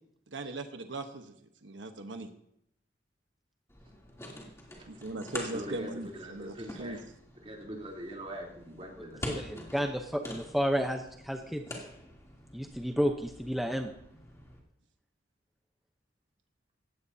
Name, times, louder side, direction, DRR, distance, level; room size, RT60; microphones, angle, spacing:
voice 1, 0.3-1.3 1.6-2.3 4.9-7.0, right 2 dB, 85° right, 6 dB, 1.1 m, -39 dB
sound 1, 3.7-14.6, left 1 dB, 15° left, 3.0 m, -46 dB
voice 2, 4.7-5.1 5.5-7.0 7.4-9.7, equal, 35° right, -2 dB, 3.5 m, -43 dB
voice 3, 9.2-11.6 12.5-13.9, equal, ahead, 3 dB, 0.8 m, -31 dB
18.0 x 16.0 x 2.8 m, 0.72 s
head